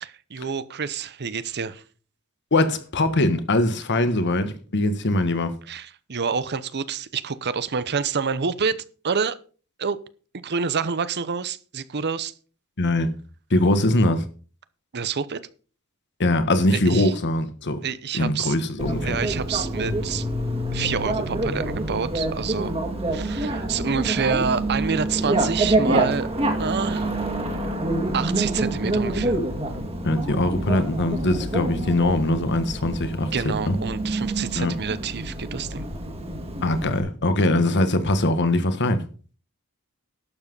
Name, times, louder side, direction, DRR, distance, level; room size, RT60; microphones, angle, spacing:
voice 1, 0.0-1.8 5.7-9.4 9.8-10.0 10.3-12.3 14.9-15.4 16.7-17.1 17.8-18.6 19.0-20.3 20.7-22.7 23.1-26.3 26.6-27.1 28.1-29.4 33.3-35.9, right 6 dB, 50° right, 0.7 m, -27 dB
voice 2, 2.5-5.5 12.8-13.1 13.5-14.3 16.2-17.8 18.1-19.2 30.0-33.7 34.5-34.7 36.6-39.0, left 1 dB, 55° left, 1.4 m, -22 dB
Bicycle, 18.8-37.0, right 1 dB, 25° right, 2.2 m, -27 dB
12.0 x 7.4 x 5.4 m
head